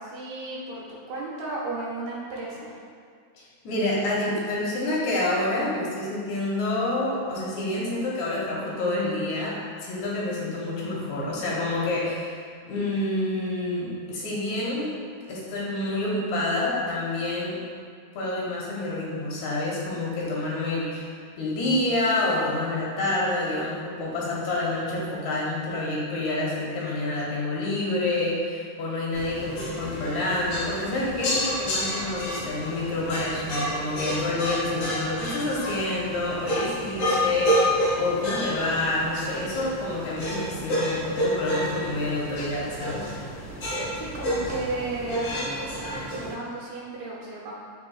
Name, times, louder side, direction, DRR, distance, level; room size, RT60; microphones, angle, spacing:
voice 1, 0.0-2.7 43.9-47.5, right 2 dB, 75° right, -5 dB, 2.1 m, -34 dB
voice 2, 3.3-14.9 15.3-17.6 18.2-43.2, left 2 dB, 80° left, -5 dB, 2.1 m, -28 dB
sound 1, 29.1-46.3, equal, 60° left, 1.9 m, -30 dB
4.4 x 4.0 x 2.3 m, 2.2 s
omnidirectional pair, 3.3 m